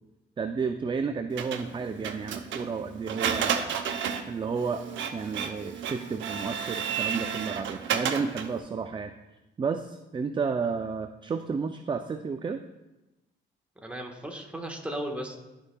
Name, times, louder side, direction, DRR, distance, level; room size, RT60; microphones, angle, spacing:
voice 1, 0.4-3.8 4.3-4.8 5.1-9.1 9.6-12.6, right 5 dB, 25° right, 8 dB, 0.4 m, -32 dB
Printer, 1.4-8.6, right 7 dB, 75° right, 0.7 m, -32 dB
voice 2, 13.8-15.4, right 1 dB, 5° right, 2 dB, 1.2 m, -36 dB
13.0 x 4.7 x 2.3 m, 1.0 s
cardioid pair, 90°, 20 cm